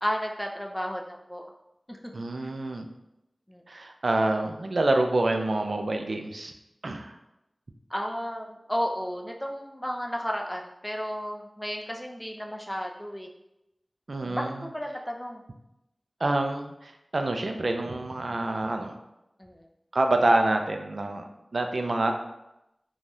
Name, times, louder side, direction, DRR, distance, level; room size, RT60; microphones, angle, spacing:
voice 1, 0.0-1.4 1.9-2.0 3.5-3.6 7.9-13.3 14.2-15.4 19.4-19.7, equal, 10° left, 1 dB, 0.4 m, -33 dB
voice 2, 2.1-2.9 3.7-6.5 6.8-7.1 14.1-14.7 16.2-19.0 19.9-21.2 21.5-22.1, right 2 dB, 75° right, 5 dB, 0.3 m, -27 dB
3.2 x 2.3 x 2.6 m, 0.87 s
wide cardioid pair, 50°, 0 cm